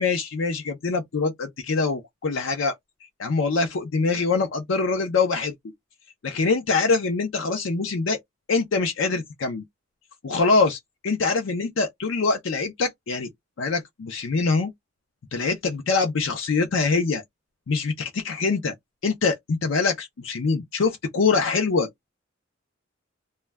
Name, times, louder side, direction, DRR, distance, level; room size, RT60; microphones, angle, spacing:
voice 1, 0.0-2.7 3.2-5.5 6.2-8.2 8.5-9.6 10.2-13.3 13.6-14.7 15.3-17.2 17.7-18.7 19.0-21.9, left 4 dB, 75° left, 0.5 m, -24 dB
2.2 x 2.1 x 3.3 m
head